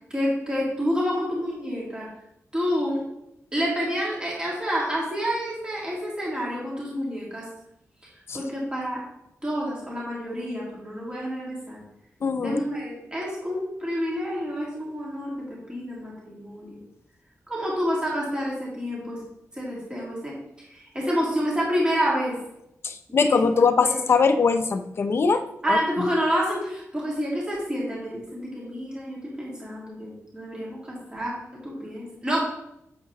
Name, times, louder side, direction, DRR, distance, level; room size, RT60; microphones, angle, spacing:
voice 1, 0.1-2.1 2.5-3.0 3.5-7.4 8.3-9.0 9.4-11.8 12.4-15.3 15.7-16.8 17.5-19.2 19.6-20.3 20.7-22.3 23.1-23.4 23.8-24.0 25.6-31.3 31.6-32.4, equal, 15° right, -5 dB, 2.0 m, -28 dB
voice 2, 12.2-12.6 22.8-25.4 25.7-25.8, left 5 dB, 50° left, 9 dB, 0.5 m, -21 dB
8.3 x 6.7 x 3.0 m, 0.83 s
wide cardioid pair, 170°, 5 cm